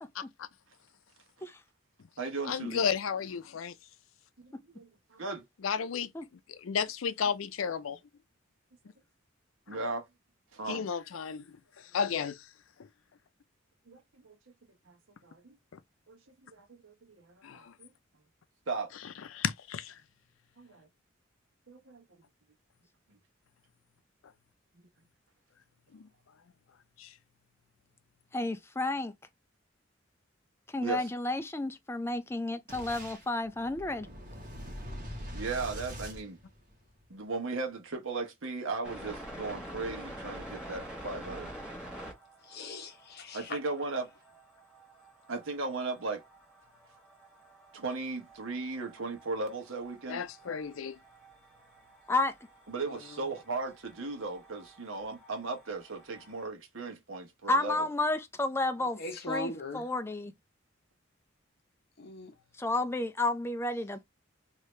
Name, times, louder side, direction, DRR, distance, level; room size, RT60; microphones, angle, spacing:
voice 1, 0.2-0.5 2.5-3.7 5.6-6.1 6.5-8.0 10.7-11.6 11.9-12.4 15.7-15.8 17.4-17.7 19.3-19.9 25.9-26.1 27.0-27.1 50.1-51.0, left 6 dB, 85° left, 0.5 m, -33 dB
voice 2, 2.2-2.8 4.4-5.4 9.7-10.0 10.5-10.8 13.9-14.4 14.9-15.0 15.2-15.5 16.1-16.2 16.5-17.9 18.7-18.9 20.6-20.9 21.7-22.0 30.8-31.1 35.3-36.4 37.1-41.5 43.3-44.1 45.3-46.2 47.7-50.2 52.7-57.9, right 3 dB, 80° right, 1.1 m, -37 dB
voice 3, 28.3-29.1 30.7-34.1 52.1-52.3 57.5-59.0 59.3-60.3 62.6-64.0, left 2 dB, 10° left, 0.4 m, -31 dB
Boom, 32.7-37.1, equal, 40° right, 1.3 m, -43 dB
sound 1, 38.8-56.4, right 1 dB, 5° right, 1.3 m, -49 dB
voice 4, 42.4-43.6 52.8-53.2 59.0-59.9 62.0-62.3, left 2 dB, 55° left, 0.9 m, -39 dB
3.1 x 2.8 x 3.2 m
head